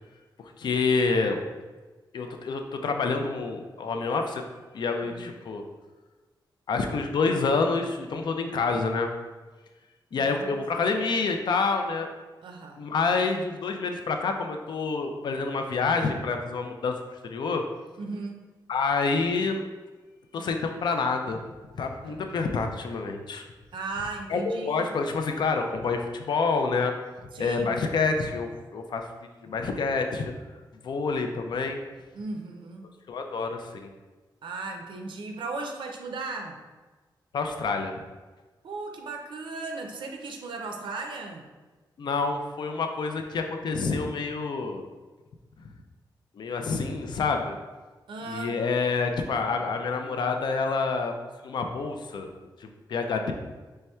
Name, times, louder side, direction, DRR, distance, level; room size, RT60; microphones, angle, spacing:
voice 1, 0.4-1.4 2.1-4.4 4.7-5.6 6.7-9.1 10.1-12.1 12.8-17.0 17.2-17.6 18.7-19.6 20.3-21.4 21.7-23.4 24.3-26.9 27.4-29.1 29.4-30.3 30.8-31.8 33.1-33.9 37.3-37.9 42.0-44.9 45.6-45.7 46.4-47.6 48.2-51.1 51.4-52.3 52.6-53.3, left 4 dB, 65° left, 5 dB, 0.4 m, -27 dB
voice 2, 10.1-10.6 12.4-12.8 18.0-18.4 22.0-22.4 23.7-24.9 27.3-27.7 32.1-32.9 34.4-36.6 38.6-41.5 48.1-48.6, right 3 dB, 80° right, 3 dB, 0.4 m, -37 dB
4.2 x 3.2 x 2.2 m, 1.3 s
wide cardioid pair, 110°, 8 cm